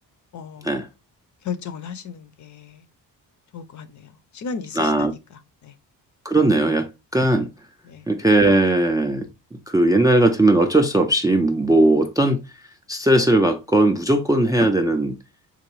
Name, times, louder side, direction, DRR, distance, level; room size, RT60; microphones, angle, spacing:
voice 1, 0.3-0.7 1.4-2.9 3.5-5.2 5.6-5.8 7.9-8.1, left 6 dB, 50° left, 0.6 m, -35 dB
voice 2, 4.8-5.1 6.2-7.7 8.1-15.2, right 1 dB, 10° right, 0.3 m, -19 dB
3.8 x 2.6 x 3.0 m
cardioid pair, 110°, 37 cm